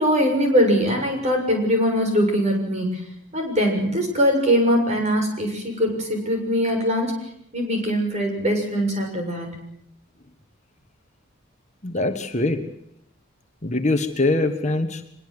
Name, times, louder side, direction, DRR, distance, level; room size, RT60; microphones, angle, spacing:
voice 1, 0.0-7.1 7.5-9.6, equal, 30° right, 3 dB, 6.9 m, -22 dB
voice 2, 11.8-12.7 13.6-15.0, left 2 dB, 30° left, 6 dB, 1.4 m, -23 dB
24.0 x 22.0 x 7.9 m, 0.73 s
head